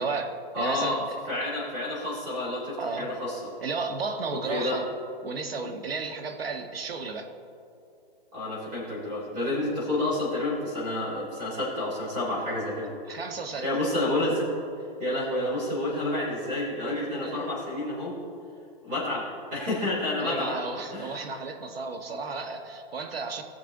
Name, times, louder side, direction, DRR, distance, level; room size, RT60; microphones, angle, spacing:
voice 1, 0.0-1.2 2.8-3.1 3.6-4.9 5.2-7.3 13.1-13.7 15.4-15.5 17.2-17.5 20.2-23.4, right 4 dB, 80° right, 6 dB, 1.5 m, -33 dB
voice 2, 0.5-1.0 1.3-3.4 4.3-4.8 8.3-12.9 13.6-14.5 15.0-18.1 18.8-20.6 20.9-21.2, left 1 dB, 15° right, -6 dB, 3.1 m, -29 dB
19.5 x 6.8 x 3.9 m, 2.5 s
hypercardioid pair, 175°, 29 cm